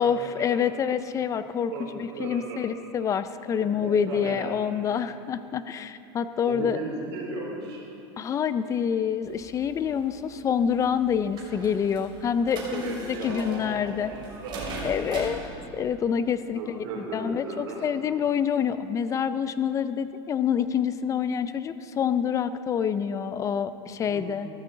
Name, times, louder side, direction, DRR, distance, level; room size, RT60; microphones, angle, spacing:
voice 1, 0.0-1.7 2.0-6.8 8.2-14.1 14.8-15.4 15.7-16.8 17.1-24.5, left 7 dB, 25° left, 13 dB, 0.4 m, -27 dB
voice 2, 2.1-2.6 3.8-4.5 6.5-7.8 12.6-14.8 16.5-17.8 24.0-24.4, right 3 dB, 85° right, -2 dB, 3.2 m, -36 dB
sound 1, 9.2-15.5, right 3 dB, 35° right, 3.0 m, -41 dB
14.0 x 14.0 x 3.9 m, 2.8 s
supercardioid pair, 140°, 14 cm